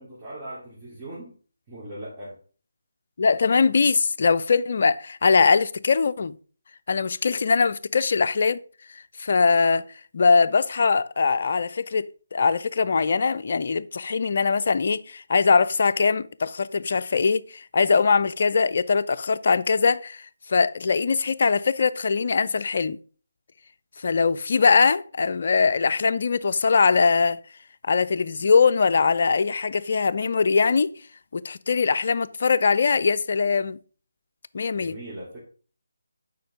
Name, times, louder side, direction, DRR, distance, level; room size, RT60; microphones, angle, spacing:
voice 1, 0.0-1.3 1.7-2.3 34.7-35.4, right 1 dB, 20° right, 2.7 m, -39 dB
voice 2, 3.2-6.4 6.9-8.6 8.9-9.8 10.1-23.0 24.0-27.4 27.8-30.9 31.3-33.8 34.5-35.0, left 5 dB, 50° left, 0.4 m, -21 dB
7.6 x 5.1 x 4.9 m
figure-of-eight pair, 155°, 0 cm